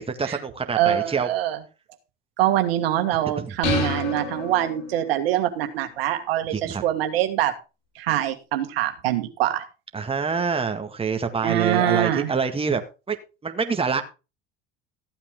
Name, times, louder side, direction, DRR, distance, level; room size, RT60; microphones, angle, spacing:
voice 1, 0.0-1.3 3.4-3.5 6.5-6.8 9.9-12.8 13.1-13.2 13.4-14.0, right 5 dB, 20° right, 6 dB, 1.8 m, -26 dB
voice 2, 0.7-1.6 2.4-7.5 7.9-9.7 11.4-12.3, right 12 dB, 90° right, 6 dB, 1.7 m, -24 dB
sound 1, 3.6-5.3, left 4 dB, 80° left, 5.1 m, -29 dB
14.5 x 8.5 x 3.7 m, 0.29 s
supercardioid pair, 90°, 29 cm